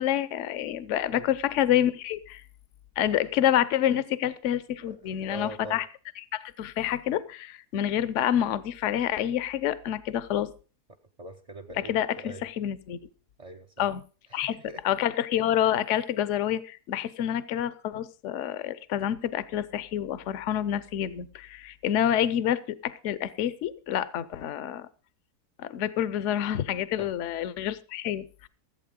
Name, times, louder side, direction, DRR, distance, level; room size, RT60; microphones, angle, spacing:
voice 1, 0.0-2.4 3.0-5.8 6.3-10.5 11.8-13.0 13.8-14.0 14.3-14.6 14.8-24.9 25.6-28.5, left 11 dB, 60° left, 17 dB, 0.9 m, -28 dB
voice 2, 4.8-5.8 11.2-12.4 13.4-13.9 14.3-14.8 27.0-27.1, right 1 dB, 35° right, 7 dB, 0.5 m, -43 dB
14.5 x 8.2 x 5.2 m, 0.36 s
omnidirectional pair, 1.7 m